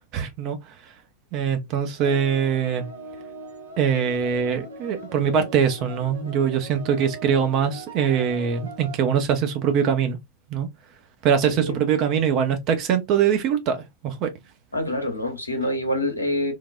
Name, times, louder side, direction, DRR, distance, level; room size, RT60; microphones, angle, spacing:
voice 1, 0.1-0.6 1.3-2.9 3.8-10.2 10.5-10.7 11.2-14.3, right 7 dB, 40° right, 0.6 m, -22 dB
sound 1, 2.0-9.0, right 3 dB, 75° right, 0.8 m, -40 dB
voice 2, 11.4-11.8 14.7-16.5, left 1 dB, 85° left, 0.8 m, -26 dB
3.3 x 2.2 x 2.3 m
figure-of-eight pair, 90°, 0 cm